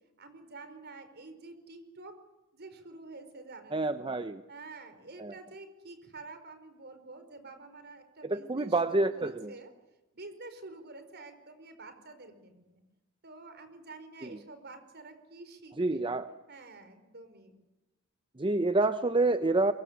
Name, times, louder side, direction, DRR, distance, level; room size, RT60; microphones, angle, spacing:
voice 1, 0.2-2.1 2.5-4.1 4.5-9.7 10.1-12.8 13.2-16.1 16.5-17.5, right 3 dB, 50° right, 9 dB, 5.0 m, -48 dB
voice 2, 3.7-4.4 5.2-5.4 8.2-9.5 14.2-14.4 15.8-16.3 18.4-19.7, right 2 dB, 25° right, 10 dB, 0.8 m, -28 dB
24.0 x 23.5 x 8.3 m, 0.99 s
head